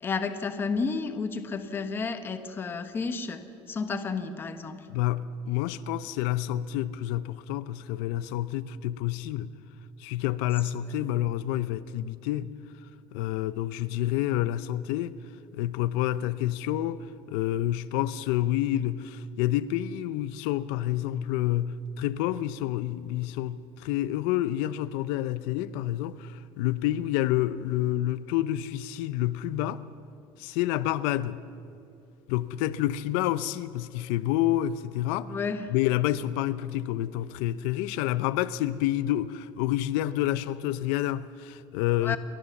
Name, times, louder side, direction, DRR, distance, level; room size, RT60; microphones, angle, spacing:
voice 1, 0.0-4.9 35.2-35.7 42.0-42.2, left 4 dB, 20° left, 1.2 m, -31 dB
voice 2, 4.9-9.5 10.0-12.5 13.1-15.2 15.5-29.8 30.4-31.4 32.3-35.3 35.7-42.2, left 13 dB, 90° left, 0.6 m, -28 dB
30.0 x 12.5 x 7.1 m
cardioid pair, 165°, 10 cm